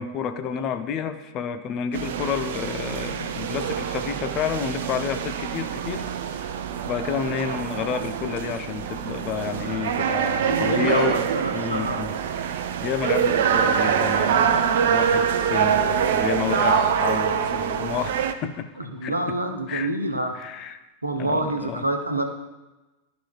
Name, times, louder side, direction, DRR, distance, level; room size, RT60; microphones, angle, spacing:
voice 1, 0.0-6.5 6.8-12.1 12.4-18.7 19.0-19.4 19.7-19.9 20.3-20.8 21.1-21.8, left 7 dB, 35° left, 9 dB, 0.6 m, -30 dB
sound 1, 1.9-18.3, right 8 dB, 55° right, 0.5 m, -25 dB
sound 2, 8.3-9.6 9.8-9.9 10.5-11.2 11.4-11.5 11.8-11.9 12.5-12.6 13.8-13.9 15.1-19.3, left 2 dB, 20° left, 2.1 m, -44 dB
voice 2, 10.5-12.0 18.8-20.4 21.0-22.2, right 2 dB, 85° right, 4 dB, 0.9 m, -27 dB
12.5 x 5.0 x 2.5 m, 1.1 s
figure-of-eight pair, 90°, 0 cm